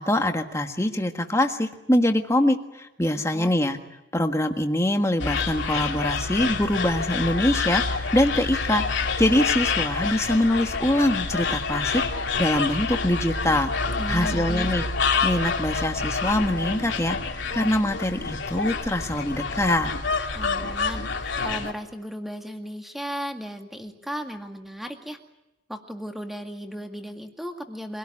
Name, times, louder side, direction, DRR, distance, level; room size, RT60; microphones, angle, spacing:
voice 1, 0.0-3.8 4.1-8.8 9.2-12.0 12.4-13.7 14.1-14.8 15.2-17.2 17.5-19.9, left 1 dB, 15° left, 5 dB, 1.6 m, -24 dB
voice 2, 3.1-3.5 14.0-14.7 20.3-25.2 25.7-28.0, equal, ahead, 4 dB, 2.0 m, -35 dB
sound 1, 5.2-21.7, left 4 dB, 70° left, 2.7 m, -27 dB
25.0 x 18.0 x 9.8 m, 0.98 s
head